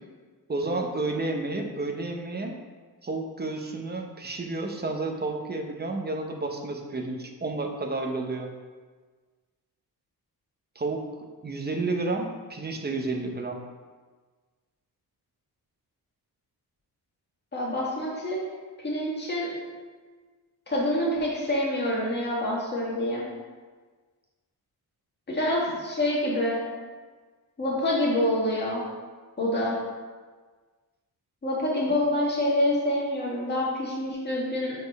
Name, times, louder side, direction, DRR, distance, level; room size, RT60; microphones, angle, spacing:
voice 1, 0.5-2.5 3.0-8.5 10.8-11.0 11.4-13.6, right 2 dB, 25° right, 3 dB, 0.8 m, -31 dB
voice 2, 17.5-18.4 18.8-19.6 20.7-23.3 25.3-26.6 27.6-28.9 29.4-29.8 31.4-34.9, left 1 dB, 25° left, -5 dB, 1.8 m, -26 dB
5.0 x 4.4 x 5.3 m, 1.4 s
wide cardioid pair, 120°, 40 cm